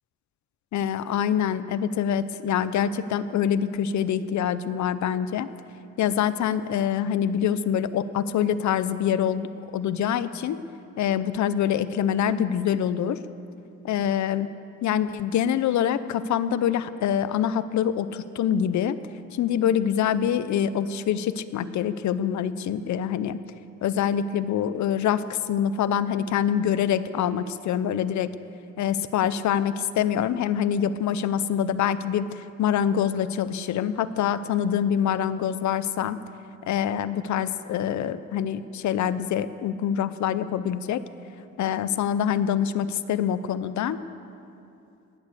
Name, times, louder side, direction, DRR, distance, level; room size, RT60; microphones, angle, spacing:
voice 1, 0.7-5.5 6.0-10.6 11.0-13.2 13.8-14.5 14.8-19.0 19.3-23.4 23.8-28.3 28.8-36.2 36.7-41.0 41.6-44.0, left 9 dB, 70° left, 14 dB, 0.7 m, -25 dB
17.5 x 10.5 x 6.8 m, 2.7 s
cardioid pair, 90°, 30 cm